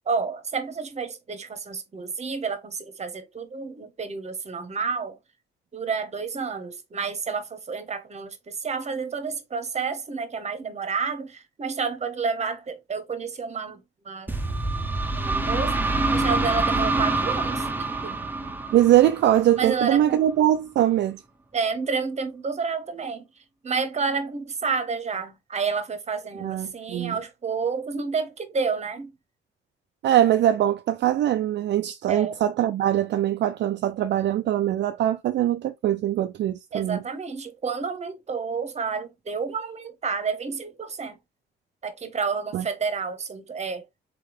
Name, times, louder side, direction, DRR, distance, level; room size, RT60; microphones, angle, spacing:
voice 1, 0.1-5.2 5.7-13.8 14.0-14.3 15.2-15.8 16.1-18.1 19.6-20.2 21.5-23.3 23.6-29.1 32.1-32.3 36.7-41.2 41.8-43.8, right 5 dB, 35° right, 1.0 m, -30 dB
sound 1, 14.3-19.9, right 2 dB, 10° right, 0.7 m, -26 dB
voice 2, 18.7-21.2 26.4-27.2 30.0-37.0 42.5-42.6, right 12 dB, 60° right, 0.4 m, -22 dB
3.8 x 3.7 x 3.1 m
cardioid pair, 90°, 20 cm